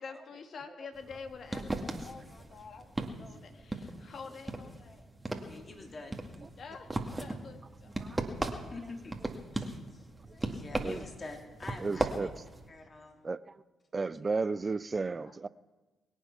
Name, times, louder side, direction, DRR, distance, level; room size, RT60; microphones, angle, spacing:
voice 1, 0.0-5.0 6.6-6.9 7.2-8.2 15.2-15.3, left 5 dB, 55° left, 5 dB, 2.0 m, -47 dB
sound 1, 0.9-12.7, right 2 dB, 15° right, 2.1 m, -38 dB
voice 2, 5.3-6.7 8.5-9.1 9.5-12.3 12.7-13.2, left 3 dB, 35° left, 2 dB, 3.0 m, -47 dB
voice 3, 11.8-12.3 13.2-13.6 13.9-15.5, right 4 dB, 35° right, 18 dB, 0.5 m, -33 dB
23.0 x 9.2 x 5.9 m, 1.2 s
hypercardioid pair, 45°, 0 cm